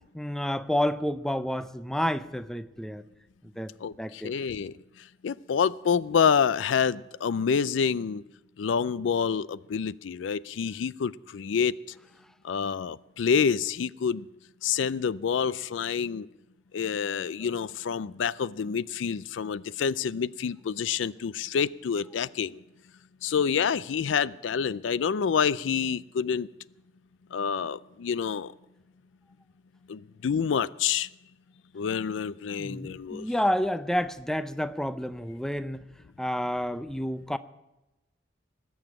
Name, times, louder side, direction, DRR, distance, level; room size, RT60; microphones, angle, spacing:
voice 1, 0.1-3.0 3.6-3.7 4.0-4.3 32.5-35.8 36.2-37.4, equal, 5° left, 13 dB, 0.5 m, -29 dB
voice 2, 3.8-4.7 5.2-8.2 8.6-11.7 12.4-14.3 14.6-16.3 16.7-22.6 23.2-26.5 27.3-28.5 29.9-31.1 31.7-33.3, left 6 dB, 75° left, 20 dB, 0.4 m, -27 dB
19.5 x 7.2 x 8.8 m, 0.99 s
head